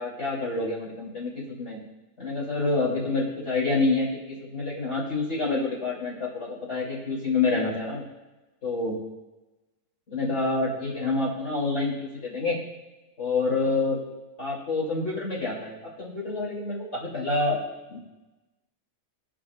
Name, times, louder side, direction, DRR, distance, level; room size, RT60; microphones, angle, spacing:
voice 1, 0.0-1.8 2.2-8.0 8.6-9.0 10.1-12.6 13.2-14.0 14.4-17.6 17.9-18.0, left 3 dB, 60° left, -6 dB, 3.2 m, -27 dB
20.0 x 7.6 x 2.4 m, 1.1 s
omnidirectional pair, 1.3 m